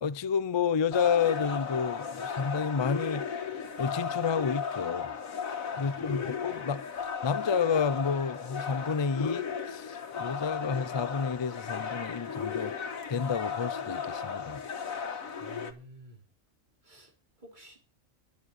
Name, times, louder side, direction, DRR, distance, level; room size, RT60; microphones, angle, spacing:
voice 1, 0.0-3.2 3.8-5.1 5.7-6.8 7.2-12.7 13.1-14.6, left 6 dB, 45° left, 0.3 m, -30 dB
sound 1, 0.9-15.7, left 6 dB, 90° left, 2.0 m, -35 dB
voice 2, 5.7-6.5 15.4-16.2 16.8-17.1 17.4-17.8, right 2 dB, 35° right, 3.5 m, -51 dB
11.5 x 7.5 x 8.1 m
omnidirectional pair, 1.4 m